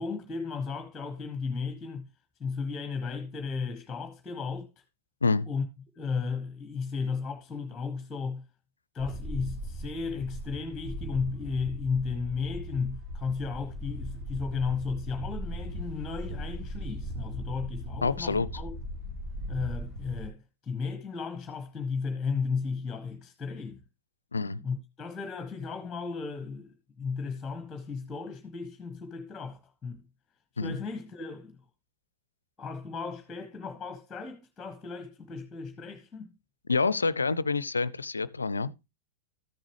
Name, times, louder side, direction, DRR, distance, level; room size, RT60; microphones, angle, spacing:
voice 1, 0.0-2.1 2.4-4.7 5.4-5.6 6.0-8.4 8.9-18.8 19.5-23.8 24.6-30.0 30.6-31.6 32.6-36.3, left 5 dB, 15° left, 1.3 m, -34 dB
Wind, 9.0-20.3, equal, 60° right, 4.3 m, -38 dB
voice 2, 18.0-18.5 24.3-24.6 30.6-30.8 36.7-38.7, left 4 dB, 75° left, 0.4 m, -27 dB
13.5 x 7.2 x 3.1 m
figure-of-eight pair, 90°, 0 cm